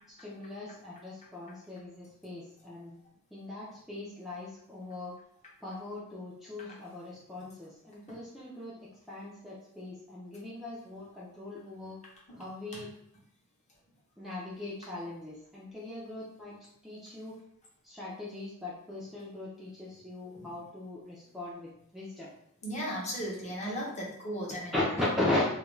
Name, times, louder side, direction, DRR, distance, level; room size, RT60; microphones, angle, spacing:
voice 1, 0.2-3.0 3.3-5.1 5.6-12.0 12.4-12.9 14.2-16.6 16.8-17.4 17.8-22.3 23.7-23.8 24.7-25.4, left 2 dB, ahead, -7 dB, 0.4 m, -38 dB
voice 2, 22.6-24.7, equal, 35° left, -4 dB, 0.7 m, -36 dB
2.3 x 2.2 x 3.0 m, 0.71 s
head